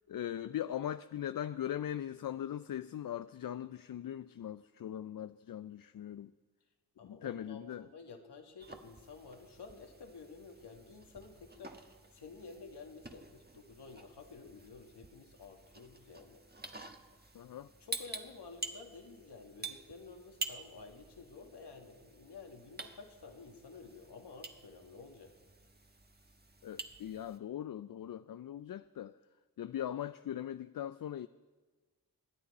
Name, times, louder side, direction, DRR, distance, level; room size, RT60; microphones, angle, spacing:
voice 1, 0.1-6.3 7.0-7.9 17.3-17.7 26.6-29.2 29.6-31.3, left 10 dB, 55° left, 0.5 m, -40 dB
voice 2, 7.0-11.8 12.1-16.4 17.8-25.3, left 4 dB, 70° left, 2.1 m, -52 dB
sound 1, 8.6-27.4, right 3 dB, 20° right, 1.4 m, -49 dB
26.5 x 9.9 x 4.2 m
supercardioid pair, 40°, 43 cm